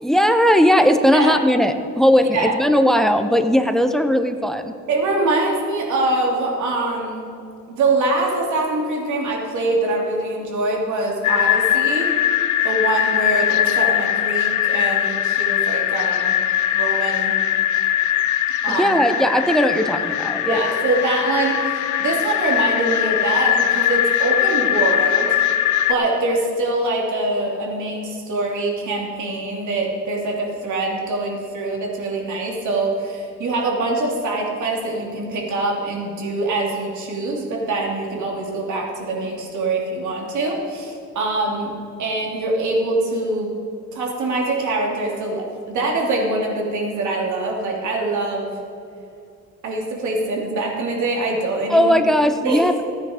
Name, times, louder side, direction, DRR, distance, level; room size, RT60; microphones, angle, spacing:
voice 1, 0.0-4.7 18.7-20.6 51.7-52.9, equal, ahead, 8 dB, 0.9 m, -17 dB
voice 2, 4.9-7.3 7.7-12.1 12.6-16.4 16.7-17.4 18.6-18.9 20.5-25.4 25.9-41.7 42.0-43.5 43.9-48.6 49.6-52.0 52.4-52.6, right 2 dB, 75° right, -1 dB, 2.8 m, -24 dB
sound 1, 11.2-25.9, left 11 dB, 75° left, 0.7 m, -20 dB
15.0 x 9.6 x 5.0 m, 2.5 s
cardioid pair, 90°, 30 cm